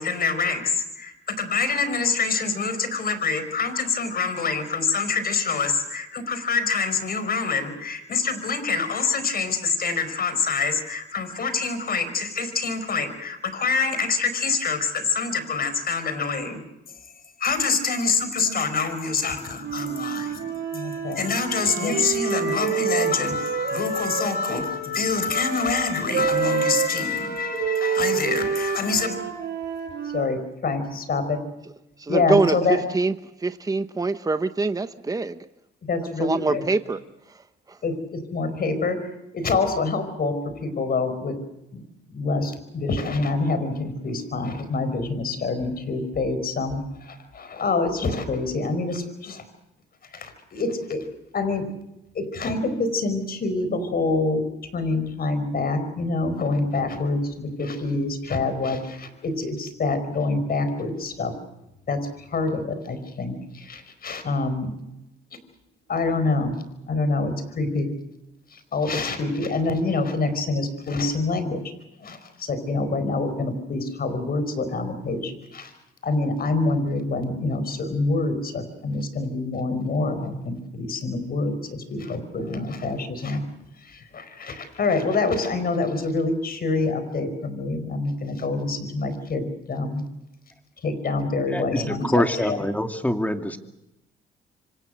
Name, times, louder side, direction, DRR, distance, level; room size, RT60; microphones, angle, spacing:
voice 1, 0.0-16.6 17.4-29.2 30.1-31.4 32.1-32.8 35.8-36.7 37.8-41.4 41.7-41.8 42.1-49.4 50.1-51.1 51.3-51.7 52.1-54.4 54.7-61.3 61.9-64.7 65.9-66.5 66.9-67.9 68.5-71.6 72.0-75.7 76.0-83.4 83.8-90.1 90.8-92.6, left 3 dB, 50° left, 11 dB, 5.0 m, -26 dB
Wind instrument woodwind instrument, 19.6-24.6 25.3-30.3, right 7 dB, 60° right, 5.8 m, -28 dB
voice 2, 32.0-33.1 33.4-35.4 36.2-37.0 37.3-37.4 37.7-37.8, right 3 dB, 20° right, 11 dB, 1.0 m, -24 dB
voice 3, 91.5-93.6, left 1 dB, 5° left, 6 dB, 2.5 m, -25 dB
27.5 x 25.5 x 6.5 m, 0.92 s
cardioid pair, 90°, 20 cm